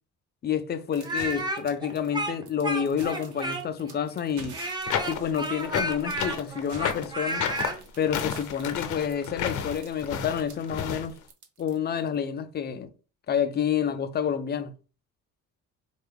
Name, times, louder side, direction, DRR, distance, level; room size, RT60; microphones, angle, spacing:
voice 1, 0.4-4.6 5.1-7.5 8.0-11.2 11.6-12.9 13.3-14.7, left 8 dB, 35° left, 0.4 m, -29 dB
sound 1, 0.9-12.1, right 4 dB, 70° right, 1.1 m, -48 dB
Speech, 1.0-3.9 4.5-7.8, right 1 dB, 15° right, 0.6 m, -32 dB
sound 2, 4.8-11.1, left 8 dB, 80° left, 0.7 m, -31 dB
4.3 x 2.3 x 3.4 m
cardioid pair, 135°, 30 cm